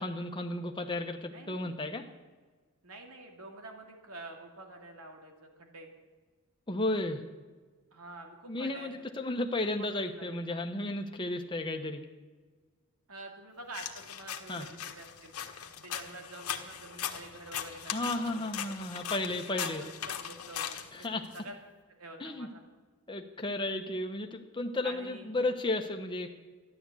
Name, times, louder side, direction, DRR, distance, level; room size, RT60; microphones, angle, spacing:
voice 1, 0.0-2.0 6.7-7.2 8.5-12.0 14.5-14.7 17.9-19.8 20.9-21.3 22.2-22.5 23.1-26.3, left 2 dB, 20° left, 4 dB, 1.1 m, -33 dB
voice 2, 1.3-1.8 2.8-5.9 7.9-8.9 9.6-10.4 13.1-15.3 15.8-18.5 19.3-20.8 21.3-21.5 22.0-22.6 24.8-25.3, right 2 dB, 85° right, 3 dB, 2.5 m, -47 dB
sound 1, 13.7-21.4, left 9 dB, 85° left, 1.3 m, -40 dB
13.0 x 11.0 x 8.4 m, 1.4 s
head